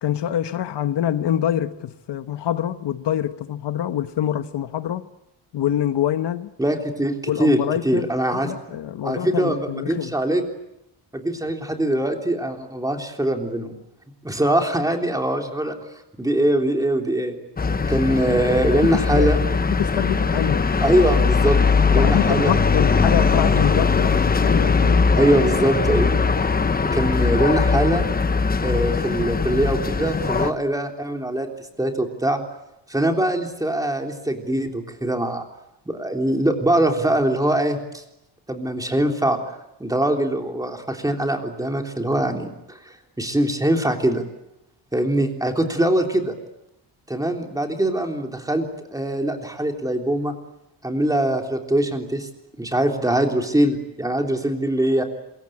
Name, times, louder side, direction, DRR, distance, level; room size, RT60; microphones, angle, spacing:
voice 1, 0.0-5.0 5.5-6.5 7.3-10.1 18.8-19.3 19.8-20.6 21.9-25.1, left 11 dB, 75° left, 1.3 m, -25 dB
voice 2, 6.6-7.6 7.8-8.5 9.0-10.4 11.1-13.7 14.2-15.7 16.2-17.4 17.9-19.4 20.8-21.6 21.9-23.2 25.2-26.1 26.9-28.0 28.6-31.5 31.8-32.4 32.9-35.4 35.9-38.0 38.5-39.4 39.8-44.2 44.9-46.3 47.1-50.3 50.8-52.3 52.6-55.0, right 1 dB, 10° right, 3.5 m, -22 dB
sound 1, 17.6-30.5, left 5 dB, 20° left, 1.0 m, -20 dB
27.0 x 23.0 x 8.7 m
wide cardioid pair, 170°, 43 cm